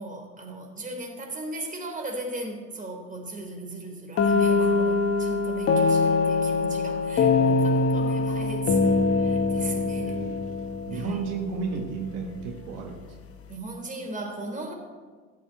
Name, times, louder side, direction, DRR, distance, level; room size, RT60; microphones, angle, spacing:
voice 1, 0.0-10.2 10.9-11.2 13.5-14.7, right 2 dB, 20° right, 2 dB, 3.7 m, -37 dB
sound 1, 4.2-11.9, left 4 dB, 40° left, 1.9 m, -23 dB
voice 2, 10.0-10.5 10.9-13.1, right 5 dB, 70° right, 3 dB, 1.6 m, -33 dB
14.0 x 6.8 x 8.8 m, 1.5 s
hypercardioid pair, 65°, 36 cm